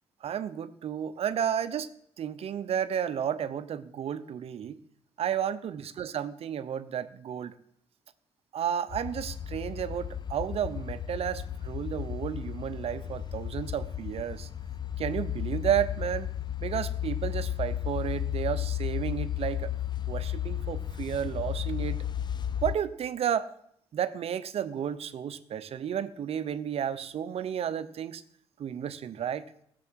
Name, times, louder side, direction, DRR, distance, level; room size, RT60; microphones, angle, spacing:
voice 1, 0.2-1.9 2.2-4.8 5.2-7.5 8.5-14.5 15.0-16.3 16.6-19.7 20.1-22.0 22.6-23.5 23.9-28.2 28.6-29.4, right 9 dB, 60° right, 13 dB, 0.7 m, -32 dB
sound 1, 8.9-22.8, left 10 dB, 40° left, 0.6 m, -34 dB
15.5 x 6.9 x 6.3 m, 0.71 s
cardioid pair, 75°, 11 cm